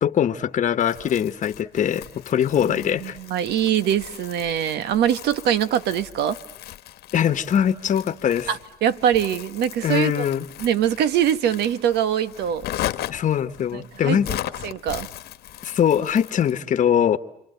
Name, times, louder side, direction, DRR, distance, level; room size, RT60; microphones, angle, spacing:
voice 1, 0.0-3.2 7.1-8.5 9.8-10.4 13.1-14.3 15.6-17.2, left 9 dB, 45° left, 1.2 m, -22 dB
Crumpling crinkling, 0.8-16.6, left 13 dB, 75° left, 1.3 m, -37 dB
voice 2, 3.0-6.4 8.5-10.2 10.6-12.6 13.7-14.4 14.6-15.1, right 9 dB, 75° right, 1.3 m, -23 dB
28.5 x 25.5 x 7.9 m
cardioid pair, 110°, 17 cm